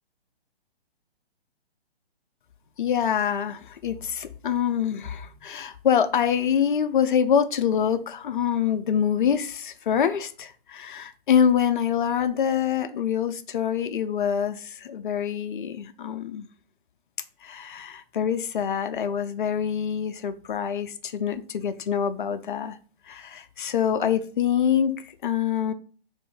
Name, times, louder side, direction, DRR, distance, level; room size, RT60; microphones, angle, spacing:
voice 1, 2.8-16.5 17.4-22.8 23.1-25.7, left 8 dB, 55° left, 11 dB, 0.4 m, -25 dB
3.5 x 2.6 x 3.4 m, 0.40 s
figure-of-eight pair, 135°, 31 cm